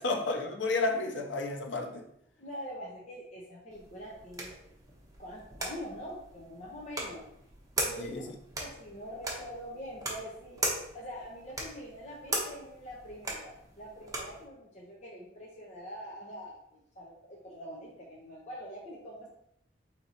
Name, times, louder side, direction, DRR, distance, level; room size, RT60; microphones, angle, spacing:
voice 1, 0.0-2.1 8.0-8.2, left 3 dB, 85° left, 3 dB, 0.7 m, -31 dB
voice 2, 2.4-4.5 5.2-7.2 7.8-8.2 8.6-19.3, equal, 40° left, -4 dB, 0.8 m, -44 dB
sound 1, 3.7-14.4, right 2 dB, 20° right, 0.9 m, -39 dB
4.2 x 2.9 x 4.1 m, 0.72 s
head